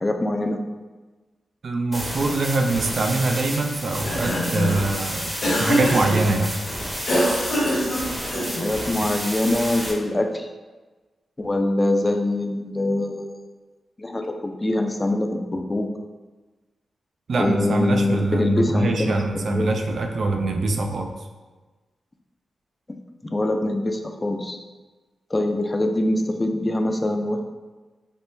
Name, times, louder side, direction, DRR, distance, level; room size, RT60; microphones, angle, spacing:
voice 1, 0.0-0.6 8.6-10.5 11.4-13.5 14.0-15.9 17.4-19.7 23.3-24.6 25.3-27.4, left 1 dB, 25° left, 4 dB, 0.3 m, -24 dB
voice 2, 1.6-5.3 5.6-6.5 17.3-21.1, right 2 dB, 65° right, 3 dB, 0.3 m, -23 dB
sound 1, 1.9-9.9, equal, 10° right, 0.7 m, -31 dB
Cough, 3.9-4.9 5.4-6.2 7.1-8.7, equal, 75° left, 0.9 m, -23 dB
3.4 x 2.1 x 2.6 m, 1.3 s
cardioid pair, 50°, 0 cm